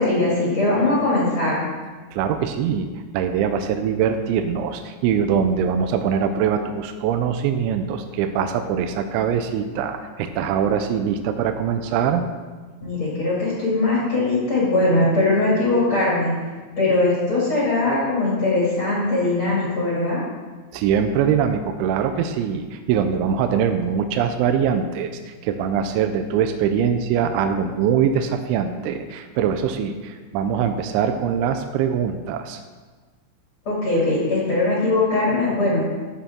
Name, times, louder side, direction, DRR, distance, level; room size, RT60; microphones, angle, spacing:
voice 1, 0.0-1.6 12.8-16.3 16.8-20.2 33.7-35.8, left 2 dB, 40° left, -7 dB, 2.2 m, -20 dB
voice 2, 2.1-2.9 3.1-12.2 20.7-32.6, right 7 dB, 85° right, 7 dB, 2.9 m, -22 dB
13.0 x 7.1 x 3.6 m, 1.4 s
omnidirectional pair, 5.5 m